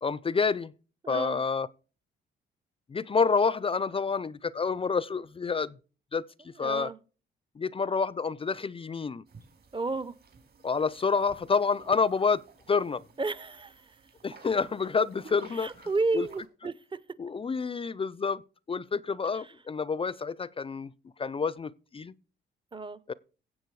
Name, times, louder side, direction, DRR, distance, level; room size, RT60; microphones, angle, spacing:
voice 1, 0.0-0.7 1.1-1.7 2.9-5.8 6.1-6.9 7.6-9.2 10.6-13.0 14.2-15.7 16.1-16.2 17.2-18.4 18.7-20.9 21.2-22.1 23.1-23.2, left 5 dB, 30° left, 0.5 m, -28 dB
voice 2, 1.0-1.4 6.6-7.0 9.7-10.1 13.2-14.0 15.5-17.0 19.3-19.5 22.7-23.0, right 3 dB, 25° right, 0.7 m, -32 dB
sound 1, 9.3-16.5, right 5 dB, 50° right, 3.9 m, -54 dB
16.0 x 7.4 x 4.7 m
cardioid pair, 90°, 20 cm